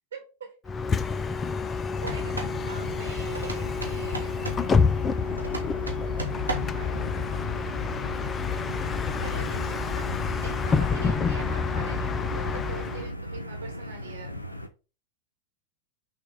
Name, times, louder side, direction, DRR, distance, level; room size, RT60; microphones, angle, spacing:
voice 1, 0.1-0.5 2.0-2.3 2.7-5.0 6.1-6.3 6.7-7.4 8.5-8.6 9.2-10.1 10.4-14.3, right 5 dB, 70° right, 2 dB, 1.2 m, -43 dB
Bus, 0.7-13.1, left 5 dB, 20° left, 0.3 m, -28 dB
sound 1, 2.0-2.6 3.3-4.7 5.4-6.8, right 1 dB, 85° right, 1.0 m, -35 dB
sound 2, 2.2-14.7, equal, 85° left, 0.5 m, -38 dB
6.1 x 2.3 x 3.7 m, 0.33 s
figure-of-eight pair, 90°, 0 cm